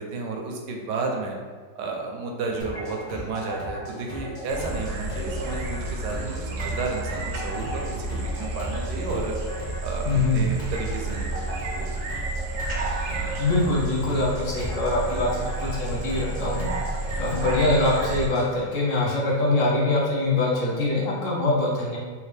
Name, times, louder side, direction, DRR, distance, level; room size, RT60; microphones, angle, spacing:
voice 1, 0.0-1.4 1.7-9.3 9.8-12.1, right 3 dB, 90° right, 1 dB, 1.3 m, -32 dB
sound 1, 2.6-18.5, equal, 45° left, 0.5 m, -37 dB
sound 2, 4.5-18.3, right 2 dB, 75° right, 1.0 m, -31 dB
voice 2, 10.1-10.4 13.4-16.7 17.2-22.0, left 2 dB, 60° left, -3 dB, 0.9 m, -23 dB
3.2 x 3.1 x 3.2 m, 1.5 s
omnidirectional pair, 1.8 m